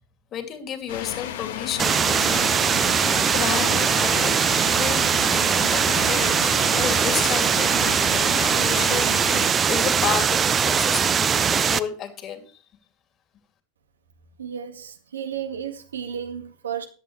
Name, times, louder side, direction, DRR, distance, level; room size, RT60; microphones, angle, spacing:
voice 1, 0.3-2.6 3.1-9.2 9.7-12.5, left 8 dB, 35° left, 2.6 m, -32 dB
sound 1, 0.9-9.5, left 11 dB, 65° left, 1.4 m, -33 dB
sound 2, 1.8-11.8, right 7 dB, 25° right, 0.6 m, -21 dB
voice 2, 14.4-16.9, right 8 dB, 75° right, 1.8 m, -33 dB
14.5 x 10.5 x 3.2 m
figure-of-eight pair, 85°, 0 cm